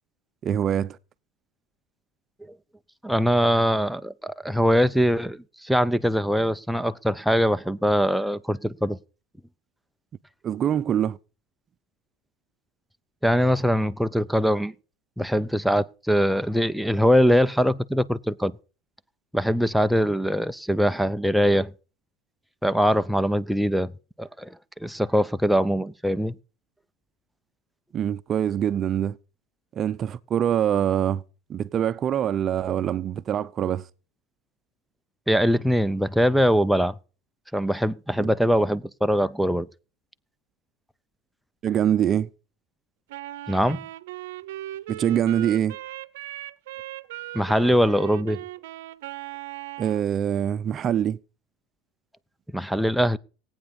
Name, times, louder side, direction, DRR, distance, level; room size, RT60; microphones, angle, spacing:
voice 1, 0.4-1.0 10.4-11.2 27.9-29.2 29.8-31.2 31.5-33.8 38.2-38.3 41.6-42.3 44.9-45.8 49.8-51.2, right 9 dB, 40° right, 0.7 m, -24 dB
voice 2, 3.0-9.0 13.2-14.7 15.2-18.5 19.3-21.7 22.6-23.9 24.2-24.6 24.8-26.3 35.3-37.0 37.5-39.7 43.5-43.8 47.3-48.4 52.5-53.2, equal, ahead, 0.6 m, -22 dB
Wind instrument woodwind instrument, 43.1-50.1, right 15 dB, 80° right, 0.8 m, -38 dB
17.5 x 8.9 x 5.4 m
supercardioid pair, 95°, 0 cm